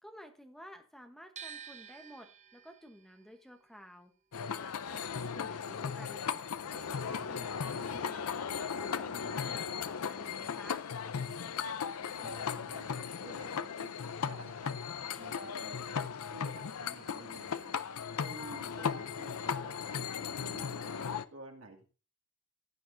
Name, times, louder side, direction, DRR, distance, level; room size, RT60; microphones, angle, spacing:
voice 1, 0.0-4.1 4.8-8.2 8.6-10.8, equal, ahead, 5 dB, 1.0 m, -53 dB
sound 1, 1.4-7.4 7.7-9.0, right 7 dB, 30° right, 0.7 m, -53 dB
sound 2, 4.3-21.2, left 6 dB, 85° left, 0.6 m, -37 dB
voice 2, 12.2-14.7 15.2-15.9 16.3-17.7 18.2-21.0 21.3-21.8, right 2 dB, 70° right, 2 dB, 2.4 m, -52 dB
15.5 x 9.2 x 2.7 m, 0.34 s
head